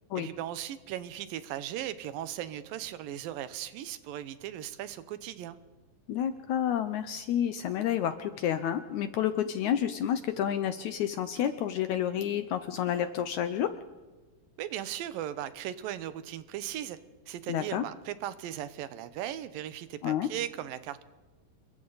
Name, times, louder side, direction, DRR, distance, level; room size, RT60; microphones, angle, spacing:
voice 1, 0.2-5.6 14.6-17.0 17.3-21.0, right 11 dB, 80° right, 13 dB, 2.6 m, -37 dB
voice 2, 6.1-13.7 17.5-17.8 20.0-20.3, left 10 dB, 75° left, 10 dB, 1.8 m, -30 dB
28.5 x 22.0 x 4.1 m, 1.3 s
omnidirectional pair, 4.1 m